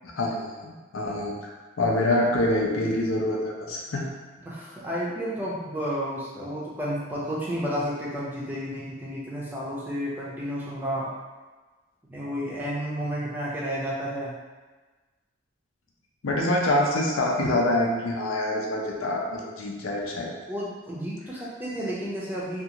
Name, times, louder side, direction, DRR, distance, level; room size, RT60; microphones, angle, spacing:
voice 1, 0.1-1.5 1.8-4.1 16.2-20.3, left 1 dB, 85° left, -1 dB, 0.5 m, -25 dB
voice 2, 4.4-11.1 12.1-14.3 20.5-22.6, equal, 10° right, -6 dB, 0.4 m, -31 dB
2.6 x 2.4 x 2.8 m, 1.3 s
head